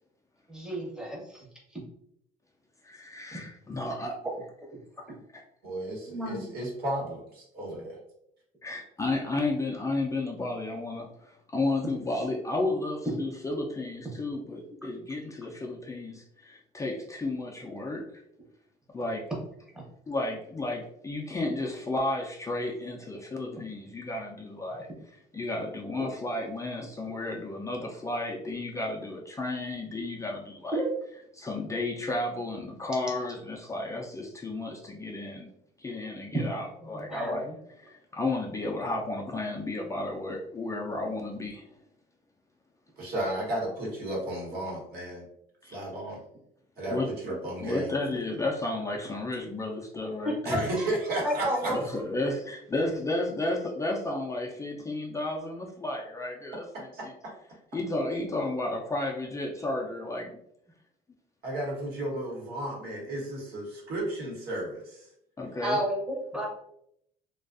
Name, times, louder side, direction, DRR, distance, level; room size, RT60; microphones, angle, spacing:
voice 1, 0.5-1.4 6.1-6.4 30.7-30.9 36.3-36.4 36.9-37.5 50.2-50.9 51.2-51.8 65.6-66.0 66.3-66.5, right 1 dB, 5° right, -3 dB, 0.7 m, -31 dB
voice 2, 2.8-4.2 5.3-5.4 8.6-18.0 18.9-19.2 20.1-30.8 31.3-35.5 35.8-37.5 37.8-41.7 45.6-45.8 46.9-47.1 47.6-50.7 51.7-57.1 57.7-60.4 65.4-65.8, left 2 dB, 20° left, -1 dB, 0.4 m, -33 dB
voice 3, 5.6-8.0 43.0-45.3 45.7-46.2 46.8-48.0 50.4-51.7 56.9-57.0 61.4-65.1, right 1 dB, 65° right, -3 dB, 1.1 m, -33 dB
2.4 x 2.3 x 2.4 m, 0.73 s
cardioid pair, 110°, 17 cm